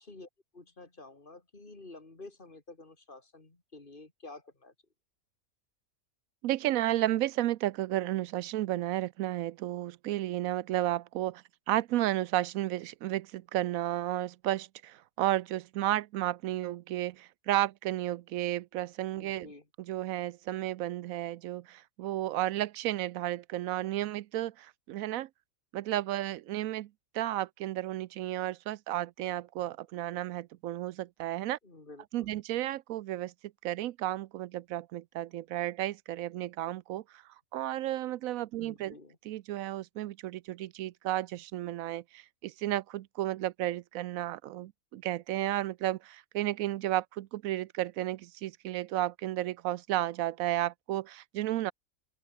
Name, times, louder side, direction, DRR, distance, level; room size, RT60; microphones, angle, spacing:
voice 1, 0.0-4.7 19.1-19.6 31.6-32.3 38.5-39.2, left 2 dB, 35° left, 3.2 m, -50 dB
voice 2, 6.4-19.5 19.8-25.3 25.7-31.6 32.1-33.3 33.6-37.2 37.5-38.9 39.2-51.7, right 14 dB, 80° right, 1.0 m, -33 dB
open air
omnidirectional pair, 1.4 m